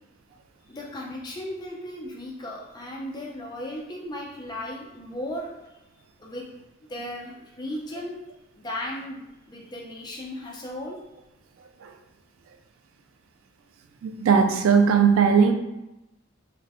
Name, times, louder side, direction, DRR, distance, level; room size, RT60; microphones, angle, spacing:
voice 1, 0.7-5.5 6.2-6.5 6.9-8.2 8.6-9.2 9.5-11.0, left 1 dB, 20° left, -2 dB, 0.4 m, -36 dB
voice 2, 14.0-15.5, right 6 dB, 90° right, 6 dB, 0.3 m, -18 dB
2.4 x 2.1 x 3.4 m, 0.93 s
head